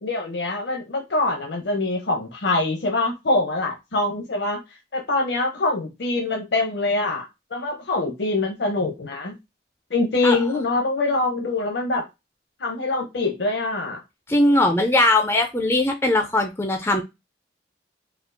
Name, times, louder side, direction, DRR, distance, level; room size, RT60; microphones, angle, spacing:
voice 1, 0.0-4.6 4.9-7.2 7.5-9.3 9.9-12.0 12.6-14.0, left 2 dB, 75° left, 0.8 m, -24 dB
voice 2, 14.3-17.0, left 1 dB, 15° left, 0.4 m, -20 dB
4.3 x 2.3 x 2.6 m
head